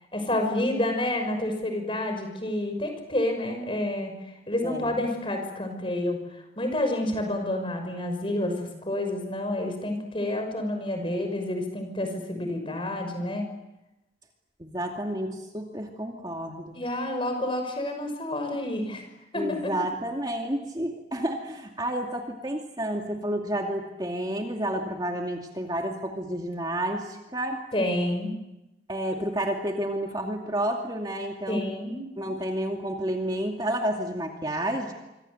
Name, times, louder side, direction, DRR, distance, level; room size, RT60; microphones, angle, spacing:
voice 1, 0.1-4.1 4.5-6.2 6.6-13.5 16.7-19.0 19.3-19.7 27.7-28.3 31.5-32.0, left 1 dB, 30° left, 5 dB, 5.9 m, -29 dB
voice 2, 4.6-4.9 14.6-16.8 19.3-27.6 28.9-31.8 32.2-34.9, right 1 dB, 20° right, 2 dB, 2.5 m, -30 dB
26.0 x 26.0 x 7.9 m, 0.96 s
head